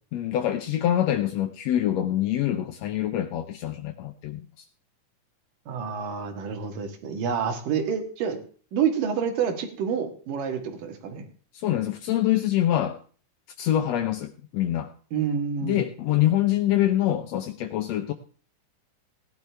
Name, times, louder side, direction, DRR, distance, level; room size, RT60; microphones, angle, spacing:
voice 1, 0.1-4.4 11.5-13.0 13.6-14.9 15.6-18.1, left 12 dB, 75° left, 5 dB, 1.6 m, -25 dB
voice 2, 5.7-8.4 8.7-11.2 15.1-15.8, right 7 dB, 80° right, 6 dB, 3.3 m, -28 dB
17.5 x 11.0 x 3.4 m, 0.43 s
omnidirectional pair, 3.8 m